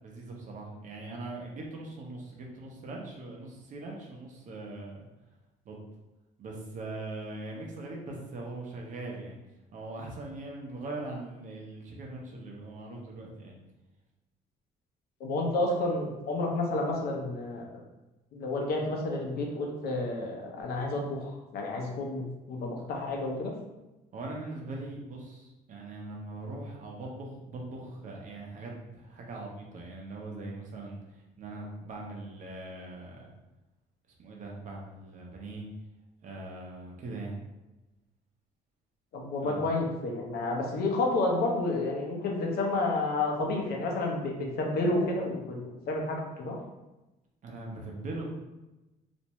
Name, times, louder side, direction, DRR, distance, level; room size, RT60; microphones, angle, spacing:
voice 1, 0.0-5.0 5.7-5.8 6.4-9.4 9.7-13.6 24.1-31.0 31.4-33.3 34.2-35.6 36.2-37.4 39.4-39.7 47.4-48.2, right 2 dB, 50° right, -1 dB, 0.7 m, -41 dB
voice 2, 15.2-17.6 18.3-22.2 22.5-23.5 39.1-46.6, left 2 dB, 65° left, 0 dB, 0.7 m, -30 dB
2.5 x 2.1 x 2.9 m, 1.0 s
cardioid pair, 110°, 17 cm